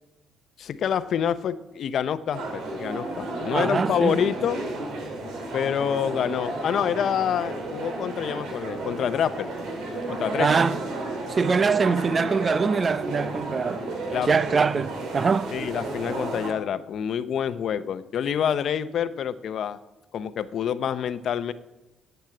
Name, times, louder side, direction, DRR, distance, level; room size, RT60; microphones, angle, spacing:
voice 1, 0.6-4.6 5.5-9.5 10.1-10.5 14.1-14.3 15.5-19.8 20.1-21.5, left 8 dB, 65° left, 0.7 m, -27 dB
sound 1, 2.3-16.5, right 2 dB, 85° right, 3.4 m, -33 dB
voice 2, 3.5-4.2 10.4-10.8 11.3-13.9 14.3-15.5, right 5 dB, 40° right, 0.5 m, -23 dB
10.5 x 8.1 x 8.9 m
cardioid pair, 90°, 0 cm